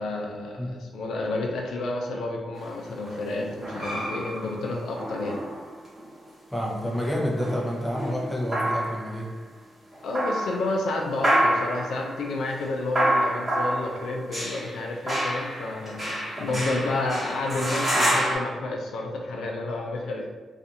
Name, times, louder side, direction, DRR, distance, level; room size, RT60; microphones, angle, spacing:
voice 1, 0.0-5.4 10.0-20.3, left 2 dB, 85° left, 0 dB, 0.4 m, -30 dB
sound 1, 2.6-6.1 6.7-9.3 9.9-10.8 11.2-18.3, right 1 dB, 20° right, 1.2 m, -28 dB
voice 2, 6.5-9.3, equal, 5° left, -1 dB, 0.5 m, -28 dB
2.5 x 2.4 x 2.7 m, 1.3 s
cardioid pair, 105°, 0 cm